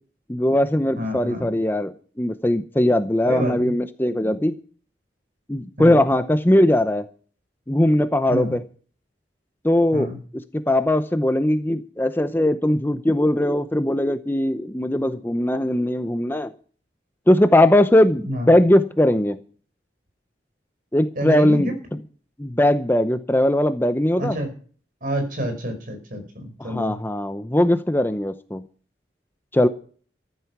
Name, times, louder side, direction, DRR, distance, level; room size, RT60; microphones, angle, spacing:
voice 1, 0.3-1.9 2.2-4.5 5.5-7.0 7.7-8.6 9.6-10.1 10.7-16.5 17.3-19.4 20.9-21.8 22.4-24.4 26.6-28.6 29.5-29.7, left 1 dB, 10° left, 10 dB, 0.7 m, -19 dB
voice 2, 1.0-1.5 3.3-3.7 5.8-6.0 8.3-8.6 9.9-10.2 18.2-18.5 21.2-21.8 24.2-24.5 25.0-27.0, equal, 50° right, 6 dB, 5.3 m, -28 dB
14.5 x 11.5 x 6.0 m, 0.43 s
head